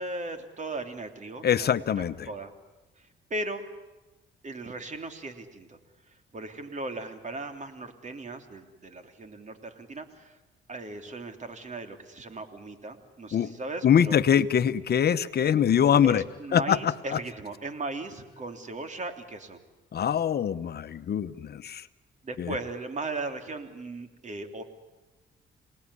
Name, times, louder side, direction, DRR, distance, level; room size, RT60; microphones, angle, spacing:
voice 1, 0.0-1.7 2.0-2.5 3.0-3.6 4.4-5.8 6.1-10.4 10.7-14.1 16.0-19.6 22.2-24.6, right 2 dB, 35° right, 7 dB, 3.4 m, -37 dB
voice 2, 1.4-2.3 13.3-13.5 13.8-16.2 16.5-17.2 19.9-21.8 22.4-22.5, left 8 dB, 55° left, 12 dB, 1.1 m, -23 dB
28.0 x 19.0 x 9.9 m, 1.1 s
cardioid pair, 90°, 20 cm